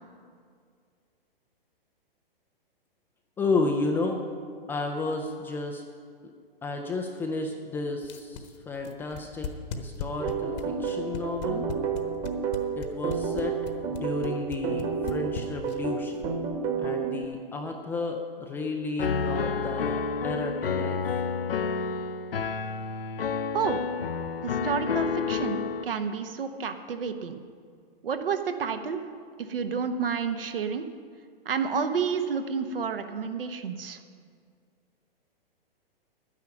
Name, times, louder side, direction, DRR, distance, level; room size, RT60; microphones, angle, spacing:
voice 1, 3.4-4.2 4.7-5.8 6.6-9.5 9.7-11.7 12.8-13.6 13.9-16.2 16.8-21.0, left 3 dB, 5° left, 2 dB, 0.3 m, -32 dB
sound 1, 8.0-16.0, left 7 dB, 45° left, 1.1 m, -37 dB
sound 2, 10.2-17.3, right 6 dB, 25° right, 1.3 m, -31 dB
Piano, 19.0-25.8, left 5 dB, 75° left, 0.6 m, -29 dB
voice 2, 24.4-27.4 28.0-29.0 29.5-30.9 31.4-34.0, right 6 dB, 70° right, 8 dB, 1.1 m, -30 dB
11.5 x 9.7 x 5.8 m, 2.1 s
figure-of-eight pair, 115°, 30 cm